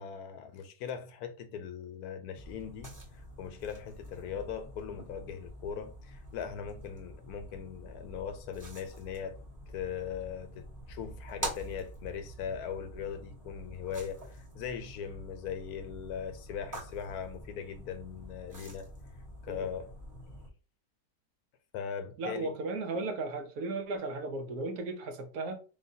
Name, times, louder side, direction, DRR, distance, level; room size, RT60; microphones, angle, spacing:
voice 1, 0.0-2.9 3.4-9.4 9.7-18.9 19.4-19.9 21.7-22.5, left 7 dB, 70° left, 1.0 m, -40 dB
sound 1, 2.4-20.5, right 1 dB, 15° right, 0.8 m, -46 dB
voice 2, 22.2-25.5, right 3 dB, 65° right, 1.2 m, -35 dB
4.0 x 3.6 x 2.7 m
omnidirectional pair, 1.8 m